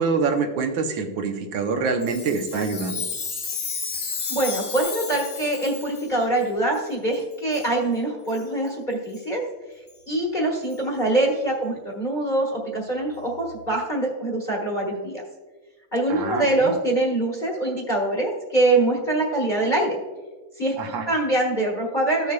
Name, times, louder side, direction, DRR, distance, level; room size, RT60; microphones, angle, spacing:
voice 1, 0.0-3.0 16.1-16.7 20.8-21.1, right 4 dB, 75° right, 6 dB, 1.6 m, -25 dB
Chime, 2.0-6.1 6.7-6.8 7.5-7.7 8.3-8.5 9.1-9.2 9.9-10.0 10.7-10.8, left 5 dB, 50° left, 1.4 m, -32 dB
voice 2, 4.3-9.4 10.1-15.2 15.9-20.0 20.6-22.3, right 2 dB, 25° left, -2 dB, 1.2 m, -24 dB
15.0 x 6.3 x 2.3 m, 1.3 s
omnidirectional pair, 2.1 m